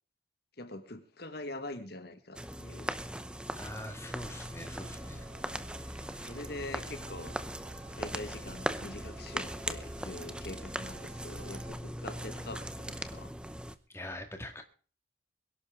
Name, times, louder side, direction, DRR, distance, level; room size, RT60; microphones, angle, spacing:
voice 1, 0.6-2.9 6.1-7.4 8.0-13.3, left 2 dB, 55° left, 9 dB, 1.6 m, -44 dB
sound 1, 2.4-13.8, right 1 dB, 5° right, 0.7 m, -39 dB
voice 2, 3.6-5.3 6.2-6.3 13.9-14.6, left 1 dB, 15° left, 5 dB, 1.8 m, -43 dB
sound 2, 4.1-11.7, right 1 dB, 80° right, 6.9 m, -50 dB
22.0 x 11.5 x 3.7 m, 0.38 s
head